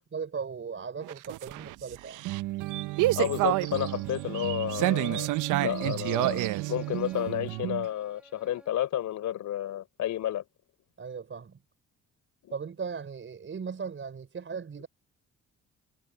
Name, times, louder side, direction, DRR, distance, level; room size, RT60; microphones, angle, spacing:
voice 1, 0.1-2.2 11.0-11.6 12.5-14.9, right 6 dB, 40° right, 5.3 m, -37 dB
sound 1, 1.0-7.9, right 17 dB, 90° right, 0.6 m, -29 dB
voice 2, 3.2-5.3 5.6-10.4 12.4-12.5, left 12 dB, 75° left, 3.8 m, -31 dB
Bowed string instrument, 3.4-8.9, equal, 5° right, 6.1 m, -54 dB
cardioid pair, 90°, 30 cm